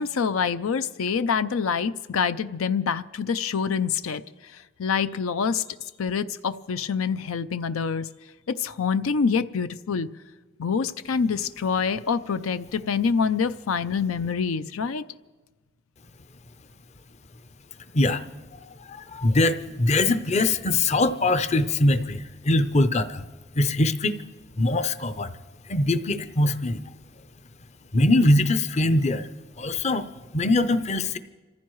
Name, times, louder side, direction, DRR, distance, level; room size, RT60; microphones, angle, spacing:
voice 1, 0.0-8.1 8.5-10.1 10.6-15.0, left 6 dB, 85° left, 12 dB, 0.5 m, -26 dB
voice 2, 17.9-23.2 23.5-24.2 24.6-25.3 25.6-26.8 27.9-29.3 29.6-30.1 30.3-31.2, left 2 dB, 30° left, 11 dB, 0.6 m, -22 dB
28.0 x 15.0 x 3.1 m, 1.3 s
head